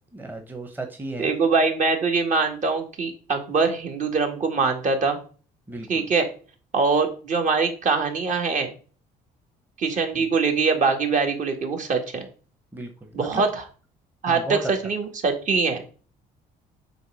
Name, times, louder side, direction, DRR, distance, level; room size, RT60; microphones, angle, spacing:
voice 1, 0.1-1.3 5.7-6.1 10.1-10.3 12.7-13.5 14.3-14.7, right 2 dB, 10° right, 4 dB, 1.0 m, -34 dB
voice 2, 1.2-5.2 5.9-6.3 6.7-8.7 9.8-12.3 13.1-13.6 14.2-15.8, right 4 dB, 45° right, 4 dB, 2.0 m, -23 dB
7.9 x 3.6 x 6.3 m, 0.39 s
cardioid pair, 110°, 17 cm